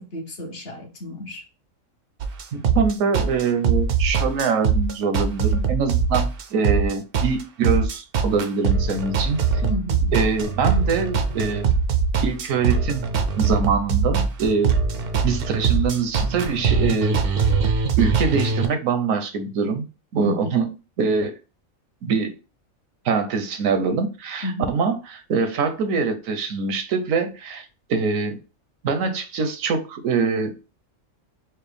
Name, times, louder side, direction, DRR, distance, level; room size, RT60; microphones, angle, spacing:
voice 1, 0.0-1.4 9.6-10.1 20.2-20.7 24.4-24.8, left 1 dB, 50° left, 1.0 m, -31 dB
sound 1, 2.2-18.7, right 5 dB, 60° right, 0.6 m, -22 dB
voice 2, 2.5-9.4 10.1-11.7 12.2-13.1 13.4-14.7 15.2-17.2 18.0-19.8 20.1-20.7 21.0-21.3 22.0-22.3 23.0-28.4 28.8-30.5, right 5 dB, 80° right, 1.1 m, -24 dB
4.6 x 2.1 x 3.3 m
omnidirectional pair, 1.4 m